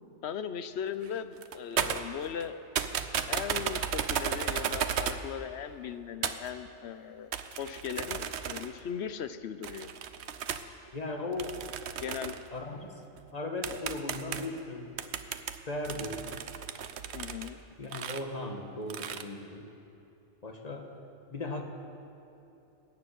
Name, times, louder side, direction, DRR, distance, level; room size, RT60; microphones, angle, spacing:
voice 1, 0.2-2.6 3.3-7.3 7.6-9.9 11.9-12.3 17.1-17.6, left 8 dB, 65° left, 11 dB, 0.9 m, -38 dB
sound 1, 1.0-1.1 1.4-2.5 2.8-5.2 6.2-6.5 7.3-8.8 9.6-10.6 11.4-12.5 13.2-13.3 13.6-14.6 15.0-17.5 17.8-18.2 18.9-19.2, right 8 dB, 65° right, 1.0 m, -34 dB
voice 2, 10.9-11.6 12.5-13.0 13.3-14.9 15.7-16.3 17.8-19.7 20.4-20.9 21.3-21.6, left 2 dB, 35° left, 3 dB, 1.5 m, -37 dB
20.5 x 7.0 x 9.2 m, 2.9 s
omnidirectional pair, 1.2 m